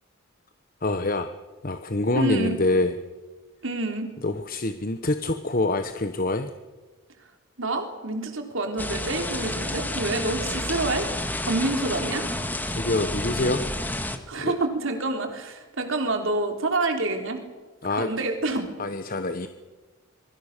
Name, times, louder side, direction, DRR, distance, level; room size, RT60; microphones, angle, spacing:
voice 1, 0.8-1.3 1.6-3.0 4.2-6.5 12.7-13.6 14.3-14.6 17.8-18.1 18.8-19.5, left 2 dB, 40° left, 9 dB, 1.1 m, -26 dB
voice 2, 2.1-2.6 3.6-4.1 7.6-11.1 11.4-12.2 14.3-17.4 17.9-18.7, right 2 dB, 60° right, 4 dB, 3.6 m, -27 dB
sound 1, 8.8-14.2, left 1 dB, 10° left, 1.8 m, -30 dB
26.0 x 23.5 x 6.7 m, 1.2 s
head